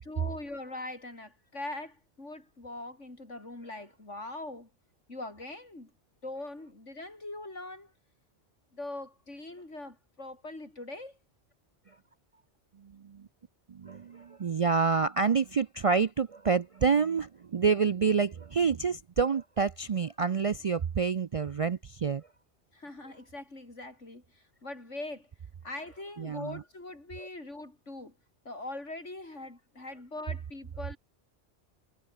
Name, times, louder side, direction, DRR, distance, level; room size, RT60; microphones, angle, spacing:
voice 1, 0.0-4.7 5.1-5.9 6.2-7.9 8.7-11.2 22.7-24.2 24.6-25.3 25.6-28.1 28.5-31.0, left 2 dB, 85° left, 5.8 m, -42 dB
voice 2, 12.8-13.3 13.7-22.2 26.2-26.6 27.2-27.3, right 5 dB, 55° right, 0.4 m, -28 dB
omnidirectional pair, 1.2 m